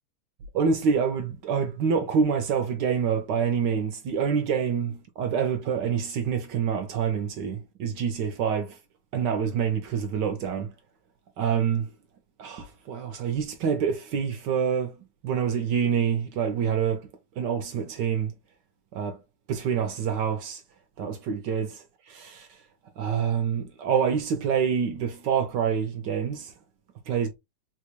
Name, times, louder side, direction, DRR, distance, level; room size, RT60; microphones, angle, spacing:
voice 1, 0.5-8.8 9.1-10.7 11.4-11.9 12.4-15.0 15.2-17.1 17.4-18.3 18.9-19.2 19.5-20.6 21.0-22.5 23.0-26.5 27.1-27.3, right 7 dB, 70° right, 1.1 m, -26 dB
4.1 x 2.2 x 3.0 m
omnidirectional pair, 2.3 m